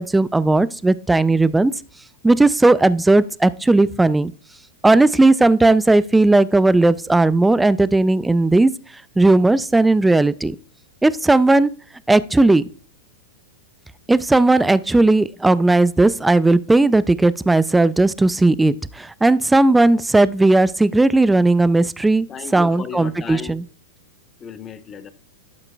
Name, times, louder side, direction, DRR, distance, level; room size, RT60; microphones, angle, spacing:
voice 1, 0.0-1.7 2.2-4.3 4.8-8.7 9.2-10.6 11.0-11.7 12.1-12.6 14.1-22.3 22.5-23.6, right 2 dB, 10° right, 0.3 m, -16 dB
voice 2, 22.3-23.6 24.4-25.1, left 6 dB, 25° left, 0.8 m, -34 dB
12.0 x 5.8 x 2.2 m
hypercardioid pair, 105°, 0 cm